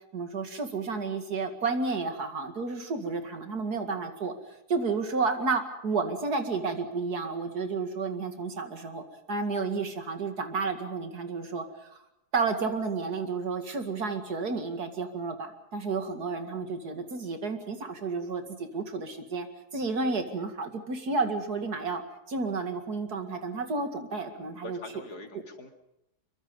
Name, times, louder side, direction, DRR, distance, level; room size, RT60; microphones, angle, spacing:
voice 1, 0.1-4.3 4.7-11.6 11.9-12.0 12.3-19.5 19.7-22.0 22.3-24.8, right 4 dB, 70° right, 6 dB, 2.7 m, -31 dB
voice 2, 24.3-25.7, left 1 dB, 75° left, 4 dB, 3.0 m, -44 dB
26.0 x 23.5 x 5.4 m, 0.84 s
omnidirectional pair, 1.7 m